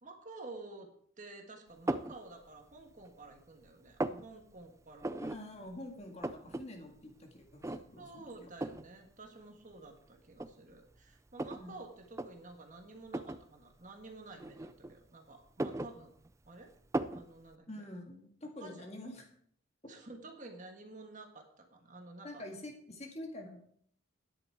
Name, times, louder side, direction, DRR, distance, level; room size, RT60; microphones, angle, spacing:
voice 1, 0.0-0.9 1.2-5.2 8.0-16.1 16.5-16.7 17.1-17.7 18.6-18.9 19.9-22.4, right 2 dB, 35° right, 4 dB, 1.5 m, -51 dB
sound 1, 1.9-2.2 2.7-3.4 3.7-4.2 5.0-5.4 5.7-5.8 6.0-6.6 7.0-7.1 7.6-8.1 8.6-8.9 9.7-9.8 10.3-11.7 12.1-12.3 13.1-13.4 14.4-15.1 15.4-16.5 16.9-17.3, right 1 dB, 15° right, 0.4 m, -36 dB
voice 2, 5.2-8.5 11.6-11.7 17.7-19.3 22.2-23.6, left 1 dB, 30° left, 2 dB, 1.9 m, -46 dB
11.5 x 10.0 x 4.8 m, 0.62 s
head